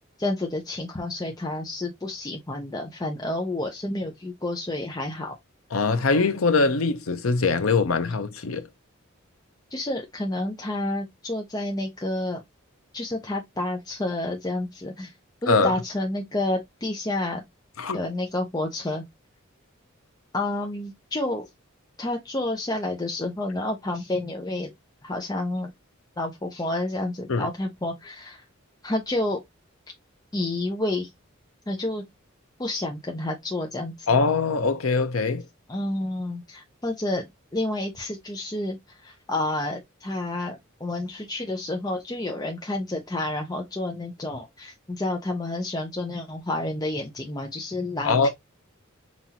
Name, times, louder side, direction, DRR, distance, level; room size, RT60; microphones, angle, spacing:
voice 1, 0.2-5.4 9.7-12.4 12.9-15.1 15.4-17.4 17.9-19.0 20.3-21.5 22.0-24.7 25.0-25.7 26.2-28.4 28.8-29.4 30.3-31.1 31.7-32.0 32.6-34.1 35.7-37.2 37.5-48.3, left 2 dB, 20° left, 0.6 m, -29 dB
voice 2, 5.7-8.7 15.5-15.8 17.8-18.0 27.3-27.5 34.1-35.4 48.0-48.3, left 4 dB, 90° left, 0.7 m, -22 dB
5.6 x 2.6 x 2.8 m
head